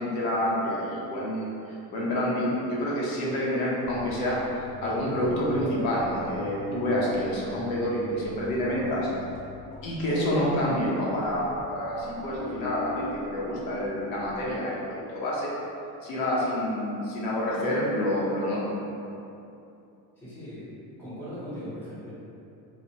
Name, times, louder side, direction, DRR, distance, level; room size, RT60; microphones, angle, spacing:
voice 1, 0.0-1.5 1.9-4.4 4.8-9.1 9.8-15.5 16.0-18.7, equal, 90° left, -5 dB, 0.8 m, -28 dB
sound 1, 3.8-14.6 14.8-14.9, left 1 dB, 45° left, 0.7 m, -40 dB
voice 2, 20.2-22.1, equal, 5° left, -11 dB, 0.6 m, -39 dB
3.2 x 2.0 x 2.7 m, 2.7 s
cardioid pair, 165°, 36 cm